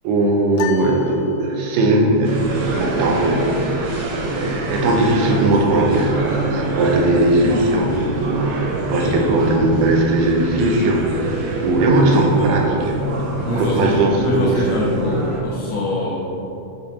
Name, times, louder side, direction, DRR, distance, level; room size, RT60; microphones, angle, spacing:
voice 1, 0.0-13.1 13.6-14.6, right 2 dB, 75° right, 0 dB, 3.1 m, -18 dB
sound 1, 0.6-2.0, left 11 dB, 85° left, 2.5 m, -32 dB
sound 2, 2.2-15.4, right 2 dB, 55° right, 2.4 m, -27 dB
voice 2, 9.0-9.5 13.4-16.2, left 1 dB, 60° left, -5 dB, 1.8 m, -23 dB
10.0 x 5.1 x 5.6 m, 2.9 s
omnidirectional pair, 4.6 m